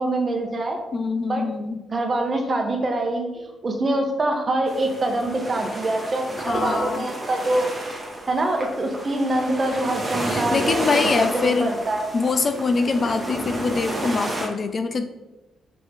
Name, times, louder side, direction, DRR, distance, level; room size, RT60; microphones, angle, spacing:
voice 1, 0.0-0.8 1.3-1.4 1.9-7.7 8.3-11.1 11.3-12.1, right 2 dB, 40° right, 3 dB, 1.3 m, -24 dB
voice 2, 0.9-1.8 6.5-7.0 10.2-11.7 12.1-15.0, left 4 dB, 45° left, 8 dB, 0.6 m, -24 dB
sound 1, 4.7-14.5, right 1 dB, 25° right, 1.9 m, -31 dB
5.3 x 5.3 x 3.8 m, 1.0 s
supercardioid pair, 60°, 0 cm